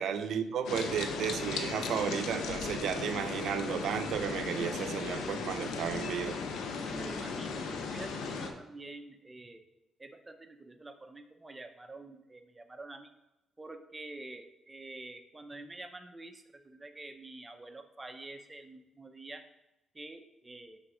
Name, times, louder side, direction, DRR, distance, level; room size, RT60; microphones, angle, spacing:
voice 1, 0.0-6.4, right 8 dB, 70° right, 9 dB, 0.6 m, -33 dB
sound 1, 0.7-8.5, left 4 dB, 80° left, 0.8 m, -36 dB
voice 2, 6.9-9.6 10.0-13.1 13.6-19.4 19.9-20.8, right 2 dB, 20° right, 7 dB, 0.7 m, -47 dB
6.2 x 4.0 x 6.1 m, 0.95 s
cardioid pair, 90°, 0 cm